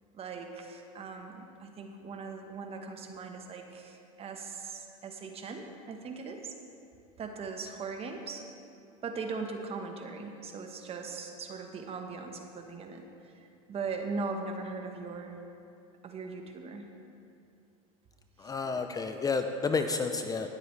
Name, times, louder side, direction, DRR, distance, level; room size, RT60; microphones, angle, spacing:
voice 1, 0.1-6.6 7.2-8.4 9.0-15.4 16.0-16.9 18.4-18.5, right 4 dB, 35° right, 4 dB, 1.2 m, -39 dB
voice 2, 18.4-20.5, left 4 dB, 20° left, 7 dB, 0.5 m, -30 dB
19.0 x 8.0 x 3.3 m, 2.6 s
supercardioid pair, 110°, 18 cm